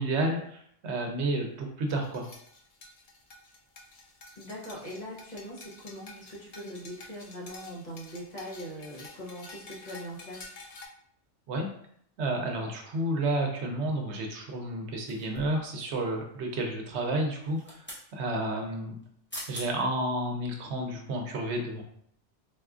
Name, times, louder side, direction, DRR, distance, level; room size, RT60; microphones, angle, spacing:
voice 1, 0.0-2.3 11.5-11.7 12.2-17.8 18.1-19.0 19.5-21.8, right 1 dB, 75° right, 2 dB, 0.9 m, -31 dB
sound 1, 1.9-10.9, left 3 dB, 60° left, 0.4 m, -49 dB
voice 2, 4.4-10.5, equal, 40° left, -5 dB, 0.8 m, -41 dB
sound 2, 15.1-15.7 17.4-18.1 19.0-19.1 19.3-19.7 20.2-20.4, equal, 10° left, 0.7 m, -42 dB
4.1 x 2.3 x 2.4 m, 0.67 s
omnidirectional pair, 1.2 m